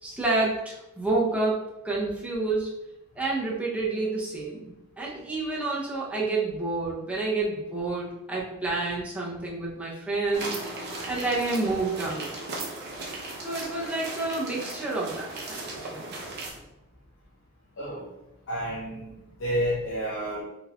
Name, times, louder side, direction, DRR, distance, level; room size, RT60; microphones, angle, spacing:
voice 1, 0.0-2.7 3.2-10.6 11.1-12.3 13.4-16.1, right 3 dB, 5° right, -5 dB, 0.7 m, -29 dB
sound 1, 10.3-16.5, right 2 dB, 50° right, 0.7 m, -37 dB
voice 2, 17.8-18.1 18.5-19.1 19.4-20.4, equal, 65° left, -5 dB, 0.6 m, -29 dB
3.8 x 2.9 x 2.4 m, 0.90 s
head